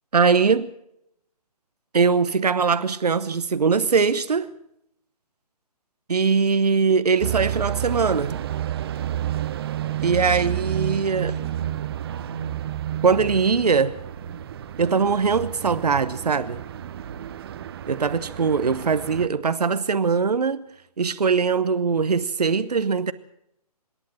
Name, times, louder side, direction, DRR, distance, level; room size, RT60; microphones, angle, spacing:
voice 1, 0.1-0.7 1.9-4.5 6.1-8.4 10.0-11.4 13.0-13.9 14.8-16.6 17.9-20.6 21.0-23.1, right 5 dB, 75° right, 1.0 m, -21 dB
sound 1, 7.2-19.3, right 11 dB, 40° right, 1.0 m, -30 dB
26.0 x 11.5 x 9.0 m
figure-of-eight pair, 140°, 20 cm